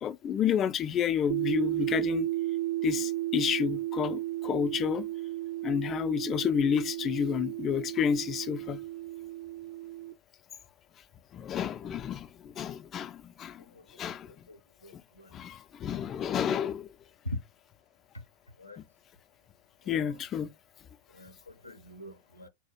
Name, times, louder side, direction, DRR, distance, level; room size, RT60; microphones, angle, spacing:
voice 1, 0.0-2.3 2.8-5.1 5.6-8.8 11.3-13.6 14.0-14.3 14.9-15.0 15.3-16.9 18.8-18.9 19.9-20.5, left 8 dB, 30° left, 0.4 m, -30 dB
sound 1, 1.3-10.1, right 16 dB, 45° right, 0.4 m, -34 dB
voice 2, 13.7-14.1 14.5-15.3 17.2-17.4 18.6-18.8 19.9-20.2 21.1-22.5, left 1 dB, 80° left, 0.5 m, -43 dB
4.0 x 2.3 x 4.4 m
figure-of-eight pair, 90°, 0 cm